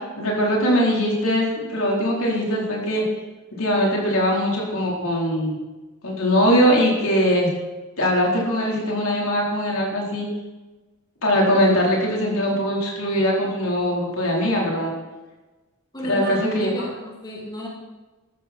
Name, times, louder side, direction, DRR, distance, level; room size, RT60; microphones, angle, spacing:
voice 1, 0.2-3.0 3.6-5.6 6.0-7.5 8.0-10.3 11.2-14.9 16.0-16.8, equal, 80° left, -3 dB, 4.3 m, -21 dB
voice 2, 15.9-17.7, left 1 dB, 20° left, -3 dB, 2.9 m, -32 dB
14.0 x 13.5 x 4.5 m, 1.2 s
head